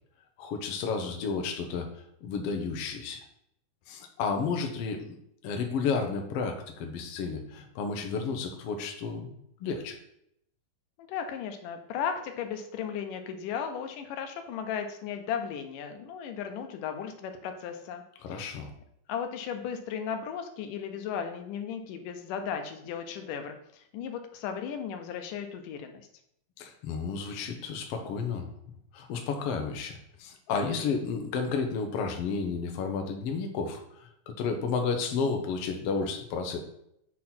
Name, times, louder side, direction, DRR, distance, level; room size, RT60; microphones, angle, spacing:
voice 1, 0.4-1.9 2.2-3.2 3.9-5.1 5.4-9.3 9.6-10.0 18.2-18.7 26.6-28.5 28.9-36.6, left 5 dB, 65° left, 4 dB, 1.5 m, -32 dB
voice 2, 11.0-18.5 19.1-26.0, left 7 dB, 85° left, 6 dB, 2.3 m, -36 dB
7.4 x 4.1 x 4.3 m, 0.74 s
omnidirectional pair, 3.7 m